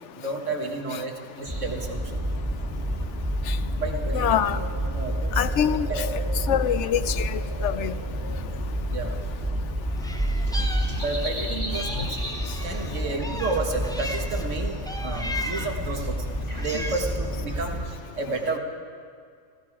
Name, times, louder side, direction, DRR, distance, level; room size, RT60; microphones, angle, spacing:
voice 1, 0.1-2.1 3.7-6.1 8.9-9.2 11.0-18.6, right 3 dB, 80° right, 1.9 m, -32 dB
sound 1, 1.4-17.9, right 1 dB, 15° right, 1.6 m, -29 dB
voice 2, 4.1-4.6 5.4-5.9 6.5-7.9, left 10 dB, 75° left, 0.9 m, -24 dB
Meow, 10.0-11.4 11.7-14.5 14.9-15.9 16.4-17.2, left 1 dB, 5° left, 0.4 m, -36 dB
18.5 x 16.0 x 4.9 m
omnidirectional pair, 1.3 m